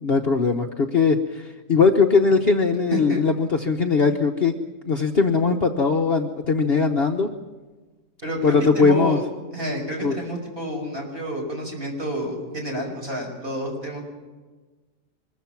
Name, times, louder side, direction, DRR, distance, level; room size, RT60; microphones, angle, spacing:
voice 1, 0.0-4.5 4.8-7.3 8.4-9.2 10.0-10.2, left 4 dB, 45° left, 3 dB, 1.1 m, -20 dB
voice 2, 8.2-9.2 9.5-14.0, right 1 dB, 35° right, 0 dB, 6.0 m, -29 dB
25.0 x 22.0 x 6.0 m, 1.3 s
omnidirectional pair, 1.6 m